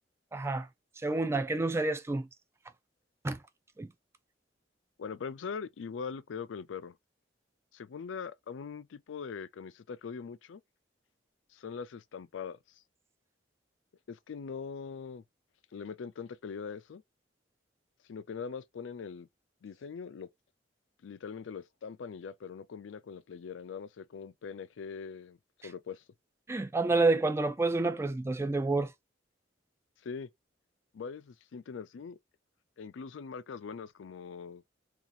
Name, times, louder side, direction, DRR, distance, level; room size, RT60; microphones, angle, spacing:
voice 1, 0.3-0.7 1.0-2.3 3.2-3.4 3.8-3.9 26.5-28.9, right 3 dB, 15° right, 0.3 m, -29 dB
voice 2, 5.0-7.0 7.7-10.6 11.5-12.6 14.1-15.2 15.7-17.0 18.1-19.3 19.6-20.3 21.0-25.4 25.6-26.0 30.0-30.3 30.9-32.2 32.8-34.6, left 6 dB, 80° left, 0.4 m, -42 dB
2.8 x 2.4 x 4.0 m
head